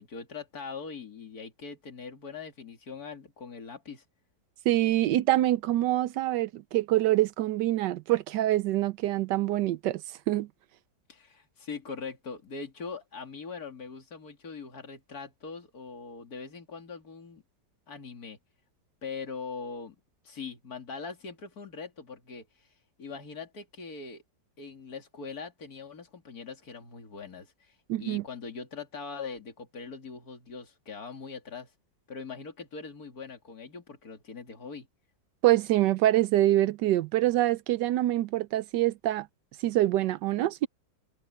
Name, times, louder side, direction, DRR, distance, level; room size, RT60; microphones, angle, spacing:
voice 1, 0.0-4.0 11.1-17.4 17.9-18.4 19.0-19.9 20.2-22.7 23.0-24.2 24.6-31.7 32.1-34.9, left 5 dB, 50° left, 3.2 m, -41 dB
voice 2, 4.7-10.5 27.9-28.2 35.4-39.3 39.6-40.7, right 15 dB, 75° right, 1.1 m, -25 dB
open air
omnidirectional pair, 2.1 m